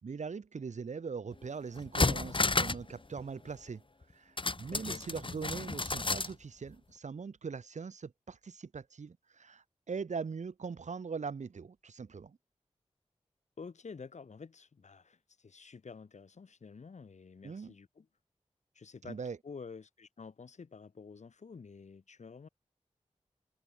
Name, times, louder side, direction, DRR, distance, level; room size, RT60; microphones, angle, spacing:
voice 1, 0.0-3.8 4.1-12.4 17.4-17.7 19.1-19.4, right 5 dB, 85° right, 4.8 m, -41 dB
sound 1, 1.3-1.4 1.8-2.9 3.2-3.3 4.4-6.3 6.7-6.8, left 3 dB, 45° left, 2.3 m, -31 dB
voice 2, 4.7-5.0 13.6-18.1 18.7-19.2 19.4-22.5, left 5 dB, 80° left, 4.2 m, -49 dB
cardioid pair, 40°, 12 cm